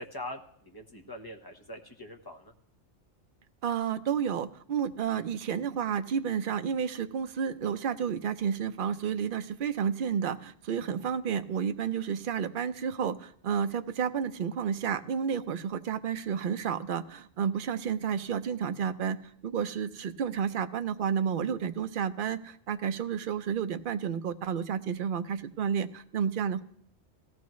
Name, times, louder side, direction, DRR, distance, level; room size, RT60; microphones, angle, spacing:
voice 1, 0.0-2.5, left 1 dB, 20° left, 2 dB, 1.1 m, -43 dB
voice 2, 3.6-26.6, right 7 dB, 55° right, 9 dB, 0.7 m, -31 dB
17.0 x 14.0 x 3.1 m, 0.65 s
omnidirectional pair, 1.2 m